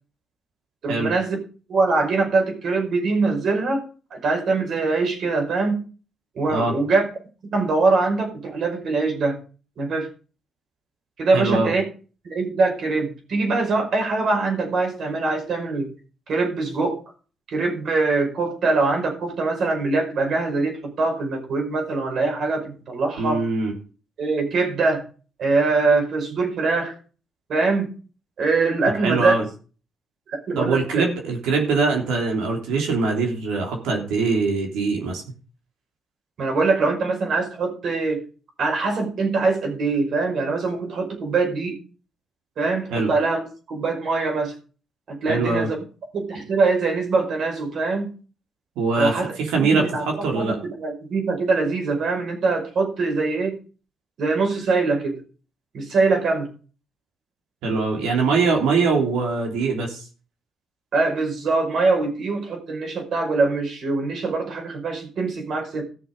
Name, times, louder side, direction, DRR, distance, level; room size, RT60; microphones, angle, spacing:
voice 1, 0.8-1.4 1.7-3.8 4.1-5.8 6.3-7.1 7.5-9.4 9.8-10.1 11.2-11.8 12.2-15.9 16.3-17.0 17.5-23.4 24.2-25.1 25.4-26.9 27.5-27.9 28.4-29.4 30.3-31.0 36.4-38.2 38.6-41.8 42.6-43.4 43.7-44.5 45.1-45.8 46.1-48.1 48.9-49.3 49.6-50.0 50.3-53.6 54.2-55.2 55.7-56.5 60.9-65.8, right 3 dB, 65° right, 3 dB, 5.2 m, -23 dB
voice 2, 11.3-11.7 23.2-23.7 29.0-29.4 30.5-35.2 42.9-43.1 45.3-45.7 48.7-50.6 57.6-60.1, right 4 dB, 85° right, 1 dB, 3.3 m, -22 dB
14.5 x 6.8 x 5.2 m, 0.37 s
supercardioid pair, 55°, 0 cm